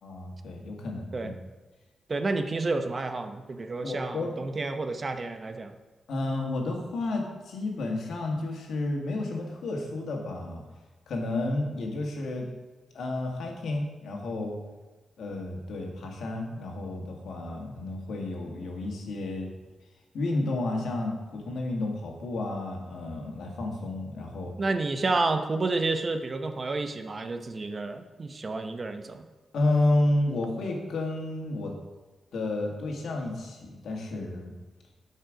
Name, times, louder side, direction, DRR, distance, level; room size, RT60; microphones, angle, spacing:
voice 1, 0.0-1.4 3.8-4.3 6.1-10.6 11.1-12.5 12.9-14.6 15.2-19.5 20.1-24.5 29.5-31.7 32.3-34.5, left 2 dB, 85° left, 1 dB, 1.9 m, -31 dB
voice 2, 2.1-5.7 24.6-29.2, right 3 dB, 35° right, 7 dB, 0.7 m, -30 dB
12.5 x 5.6 x 5.0 m, 1.2 s
wide cardioid pair, 135°, 0 cm